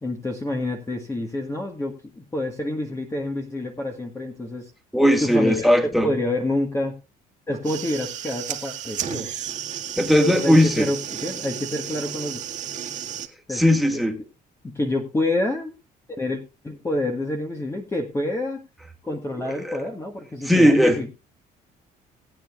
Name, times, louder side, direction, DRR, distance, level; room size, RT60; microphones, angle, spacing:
voice 1, 0.0-4.7 5.2-5.6 6.0-6.9 7.5-9.3 10.4-12.4 13.5-13.6 14.6-15.7 16.2-18.6 19.0-21.1, left 1 dB, 15° left, 1.6 m, -28 dB
voice 2, 4.9-6.1 10.0-10.9 13.5-14.1 19.5-19.8 20.5-21.0, equal, ahead, 2.2 m, -18 dB
sound 1, 7.5-13.3, right 9 dB, 45° right, 1.8 m, -33 dB
19.0 x 8.9 x 2.4 m
cardioid pair, 110°, 17 cm